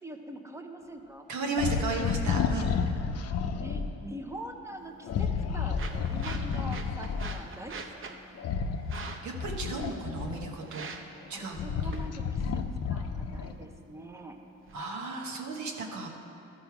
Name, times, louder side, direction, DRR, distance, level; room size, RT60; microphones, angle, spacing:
voice 1, 0.0-2.3 3.5-8.2 11.3-14.4, right 1 dB, 10° right, 4 dB, 0.8 m, -44 dB
voice 2, 1.3-2.8 9.0-10.9 11.3-11.9 14.7-16.1, right 3 dB, 70° right, 0 dB, 1.3 m, -35 dB
sound 1, 1.6-3.9 5.0-7.4 8.4-10.7 11.3-13.6, left 6 dB, 55° left, 0.6 m, -31 dB
sound 2, 4.8-14.8, right 4 dB, 45° right, 0.8 m, -46 dB
13.0 x 5.4 x 4.7 m, 2.9 s
cardioid pair, 90°, 30 cm